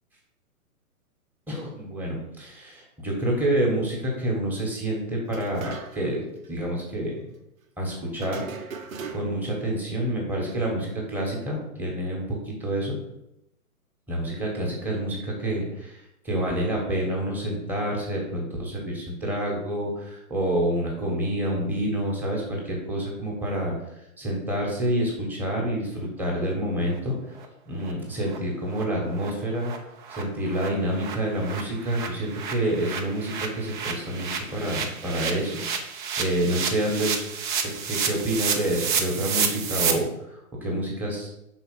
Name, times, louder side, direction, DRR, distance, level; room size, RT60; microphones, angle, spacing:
voice 1, 1.5-6.2 6.5-7.1 7.8-8.4 9.1-13.0 14.1-16.0 16.2-23.7 24.2-27.2 27.7-29.7 30.1-35.6 36.2-37.2 37.8-40.0 40.6-41.3, right 1 dB, 5° right, -3 dB, 1.4 m, -28 dB
sound 1, 5.3-6.2 6.4-6.5 8.2-9.5, right 5 dB, 65° right, 1.2 m, -39 dB
sound 2, 26.9-27.0 27.4-27.5 27.8-27.9 28.3-28.4 28.7-28.8 29.1-29.3 29.6-29.8 30.0-39.9, right 6 dB, 35° right, 0.8 m, -30 dB
5.5 x 4.3 x 5.6 m, 0.84 s
hypercardioid pair, 140°, 43 cm